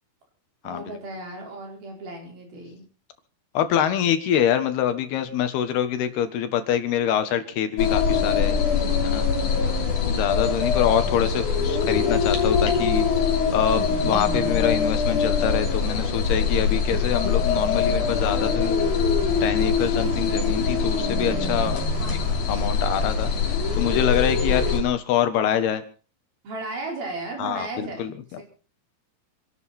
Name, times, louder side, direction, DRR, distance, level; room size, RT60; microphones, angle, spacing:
voice 1, 0.6-2.8 9.5-10.0 22.0-22.4 26.4-28.1 28.4-28.5, right 2 dB, 65° right, 1 dB, 6.7 m, -36 dB
voice 2, 3.5-8.6 9.0-9.2 10.0-13.0 13.5-18.7 19.4-21.8 22.1-22.2 22.5-23.3 23.7-25.8 27.4-28.4, left 9 dB, 80° left, 10 dB, 3.5 m, -25 dB
sound 1, 7.8-24.8, left 5 dB, 55° left, 4.3 m, -23 dB
26.5 x 12.0 x 4.3 m, 0.37 s
omnidirectional pair, 4.6 m